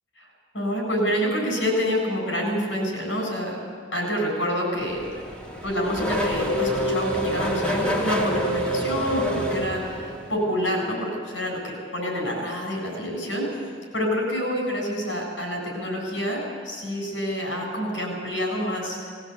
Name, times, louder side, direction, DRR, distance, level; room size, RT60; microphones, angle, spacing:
voice 1, 0.5-3.6 3.9-5.0 5.6-13.6 13.9-19.1, equal, 80° left, 0 dB, 7.8 m, -27 dB
Race car auto racing / Accelerating revving vroom, 4.8-10.4, equal, 5° left, 2.8 m, -27 dB
21.0 x 17.5 x 8.5 m, 2.1 s
head